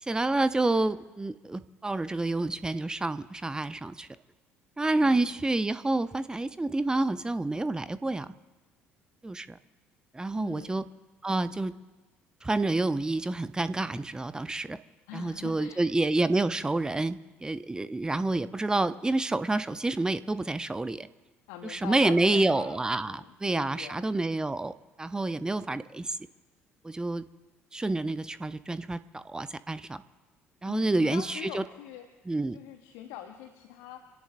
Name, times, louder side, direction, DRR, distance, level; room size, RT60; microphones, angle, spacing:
voice 1, 0.0-4.1 4.8-8.3 9.2-9.6 10.1-10.8 11.2-11.7 12.4-14.8 15.1-21.1 21.6-26.2 26.8-27.2 27.7-30.0 30.6-31.6 32.3-32.6, right 2 dB, 10° right, 14 dB, 0.7 m, -28 dB
voice 2, 5.0-5.3 10.3-10.9 15.1-15.9 21.5-24.0 30.6-32.1 32.5-34.0, left 11 dB, 65° left, 6 dB, 1.1 m, -43 dB
28.0 x 17.5 x 2.6 m, 1.3 s
figure-of-eight pair, 55°, 6 cm